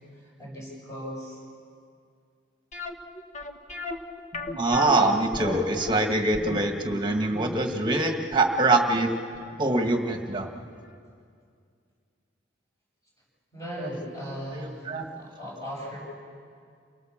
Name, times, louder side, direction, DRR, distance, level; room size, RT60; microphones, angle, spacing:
voice 1, 0.1-1.4 13.5-16.0, equal, 15° left, -5 dB, 7.9 m, -38 dB
sound 1, 2.7-9.6 9.9-10.0 10.5-10.7 10.9-11.0, left 2 dB, 40° left, 1.2 m, -36 dB
voice 2, 4.6-9.1 9.6-10.5 14.5-15.1, right 2 dB, 25° right, 4 dB, 1.7 m, -24 dB
29.0 x 17.5 x 7.3 m, 2.3 s
head